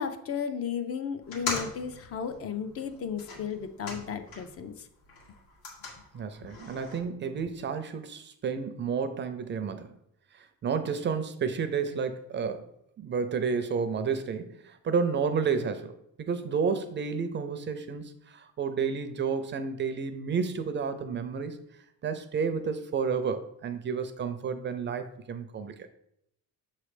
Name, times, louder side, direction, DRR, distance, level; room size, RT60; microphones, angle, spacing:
voice 1, 0.0-4.9, left 7 dB, 40° left, 9 dB, 0.6 m, -34 dB
sound 1, 1.2-4.7 5.0-7.0, left 3 dB, 80° left, 1.8 m, -40 dB
voice 2, 6.1-9.9 10.4-12.7 13.0-15.9 16.2-21.6 22.0-25.7, right 6 dB, 30° right, 9 dB, 0.5 m, -31 dB
6.7 x 3.2 x 4.9 m, 0.76 s
cardioid pair, 165°, 36 cm